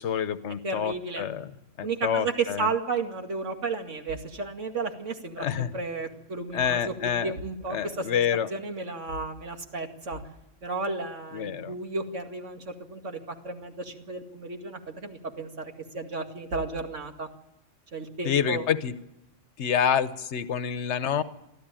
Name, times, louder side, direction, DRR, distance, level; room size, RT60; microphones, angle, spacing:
voice 1, 0.0-1.5 1.8-2.7 5.4-5.7 6.5-7.3 7.7-8.5 11.3-11.7 18.2-18.9 19.6-21.2, left 8 dB, 70° left, 13 dB, 1.2 m, -27 dB
voice 2, 0.6-1.2 1.8-8.2 8.5-10.2 10.6-13.2 13.4-17.3 17.9-18.6, right 3 dB, 85° right, 4 dB, 2.5 m, -33 dB
24.0 x 14.5 x 9.0 m, 0.86 s
omnidirectional pair, 1.2 m